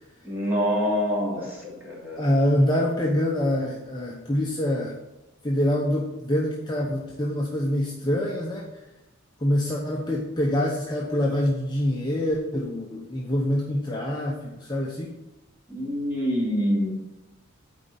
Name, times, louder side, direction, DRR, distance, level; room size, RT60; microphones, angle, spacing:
voice 1, 0.2-2.3 15.7-16.9, equal, 10° right, -6 dB, 2.9 m, -26 dB
voice 2, 2.2-5.0 5.4-8.6 9.4-15.2, left 1 dB, 20° left, -2 dB, 0.8 m, -25 dB
9.1 x 4.2 x 7.0 m, 1.0 s
head